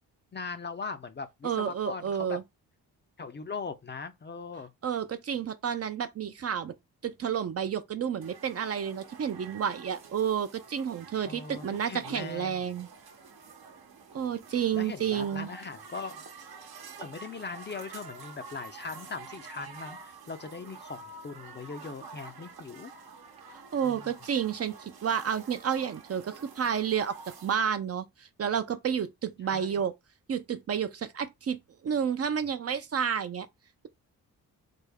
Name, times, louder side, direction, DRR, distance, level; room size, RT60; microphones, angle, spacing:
voice 1, 0.3-2.4 3.2-4.7 11.2-12.6 14.7-16.2 17.0-22.9 23.8-24.1 29.5-29.8, left 4 dB, 30° left, 0.4 m, -40 dB
voice 2, 1.4-2.4 4.8-6.7 7.0-12.9 14.1-15.5 23.7-27.1 27.4-29.9 30.3-33.5, right 8 dB, 40° right, 0.4 m, -30 dB
sound 1, 8.2-27.6, right 4 dB, 70° right, 0.9 m, -48 dB
3.4 x 2.0 x 3.4 m
cardioid pair, 75°, 38 cm